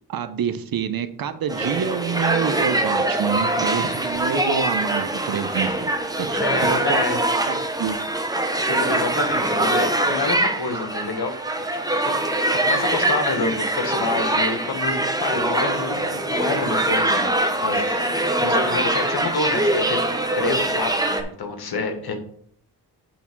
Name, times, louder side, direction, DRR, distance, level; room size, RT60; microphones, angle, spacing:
voice 1, 0.0-5.9 6.2-7.0 7.5-8.0, right 7 dB, 60° right, 11 dB, 0.9 m, -27 dB
sound 1, 1.5-21.2, right 1 dB, 10° right, 1.0 m, -23 dB
voice 2, 6.4-7.2 8.7-11.3 11.7-17.3 17.6-20.0 20.4-22.1, left 3 dB, 65° left, 6 dB, 1.5 m, -28 dB
8.4 x 3.5 x 6.0 m, 0.62 s
cardioid pair, 75°, 40 cm